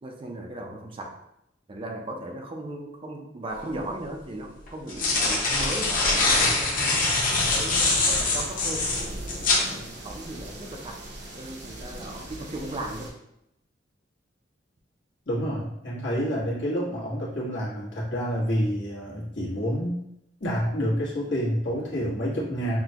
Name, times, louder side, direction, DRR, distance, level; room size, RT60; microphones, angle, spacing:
voice 1, 0.0-1.2 1.7-7.2 7.5-8.9 9.6-11.0 11.3-13.2, right 1 dB, 30° right, 2 dB, 0.5 m, -37 dB
sound 1, 3.6-3.7 4.7-9.7, left 3 dB, 45° left, 1.0 m, -23 dB
sound 2, 7.3-13.1, right 1 dB, 65° right, 0.9 m, -40 dB
voice 2, 15.3-20.0 20.4-22.8, equal, 70° left, -6 dB, 1.4 m, -28 dB
6.0 x 2.2 x 2.8 m, 0.81 s
head